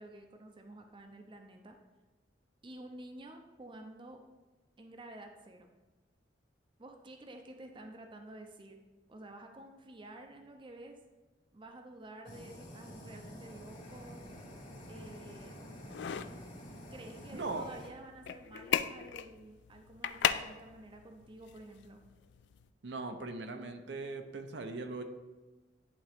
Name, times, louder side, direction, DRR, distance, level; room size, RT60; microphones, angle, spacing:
voice 1, 0.0-1.8 2.6-4.2 4.8-5.7 6.8-8.8 9.1-11.0 11.5-14.2 14.9-15.5 16.9-22.0, right 1 dB, 25° right, 4 dB, 0.6 m, -50 dB
Fire, 12.2-17.9, equal, 45° left, 1.9 m, -49 dB
sound 1, 13.9-22.7, left 9 dB, 65° left, 0.3 m, -39 dB
voice 2, 17.3-17.7 22.8-25.0, right 3 dB, 65° right, 6 dB, 0.6 m, -39 dB
10.5 x 3.8 x 3.5 m, 1.2 s
head